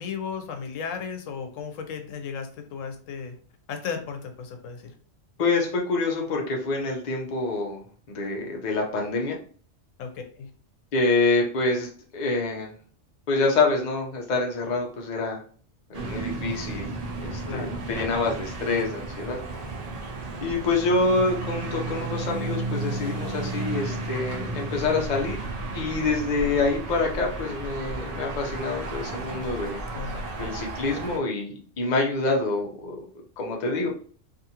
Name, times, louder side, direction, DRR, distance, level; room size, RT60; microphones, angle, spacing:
voice 1, 0.0-3.4 3.7-4.9 10.0-10.5 17.5-18.0 29.9-30.3, left 6 dB, 90° left, 6 dB, 1.0 m, -35 dB
voice 2, 5.4-9.4 10.9-12.7 13.3-15.4 15.9-16.9 17.2-19.4 20.4-25.4 25.7-29.8 30.4-33.0 33.4-33.9, left 3 dB, 45° left, 0 dB, 0.7 m, -26 dB
sound 1, 15.9-31.2, right 2 dB, 50° right, 0.4 m, -33 dB
2.6 x 2.5 x 2.8 m, 0.43 s
omnidirectional pair, 1.3 m